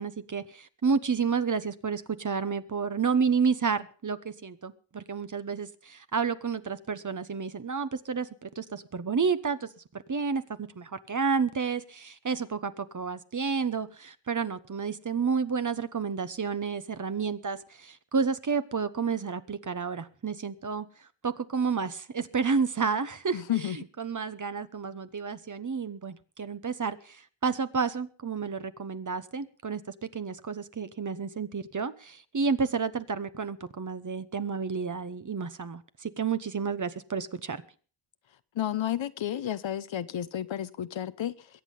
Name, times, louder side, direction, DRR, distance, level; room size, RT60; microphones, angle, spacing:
voice 1, 0.0-9.7 10.1-20.9 21.2-37.6, right 5 dB, 40° right, 1.1 m, -30 dB
voice 2, 23.3-23.8 38.6-41.5, left 11 dB, 75° left, 0.8 m, -31 dB
22.5 x 8.4 x 5.4 m
wide cardioid pair, 95°, 46 cm